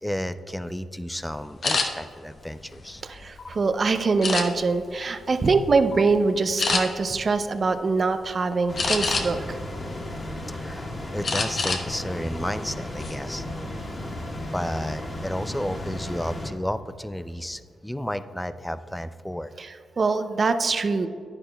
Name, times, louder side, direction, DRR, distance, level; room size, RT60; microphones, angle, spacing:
voice 1, 0.0-3.0 10.5-13.4 14.5-19.5, equal, 5° left, 12 dB, 0.4 m, -32 dB
sound 1, 1.6-1.9 2.5-3.5 4.2-4.8 5.3-5.6 5.9-6.1 6.6-6.8 8.8-9.5 10.0-10.7 11.2-11.8 12.2-12.4 12.8-13.1, left 4 dB, 55° left, 1.0 m, -26 dB
voice 2, 3.0-9.6 19.6-21.1, right 4 dB, 45° right, 9 dB, 0.5 m, -23 dB
sound 2, 8.7-16.5, left 1 dB, 40° left, 2.1 m, -34 dB
10.5 x 9.9 x 2.3 m, 2.3 s
cardioid pair, 80°, 0 cm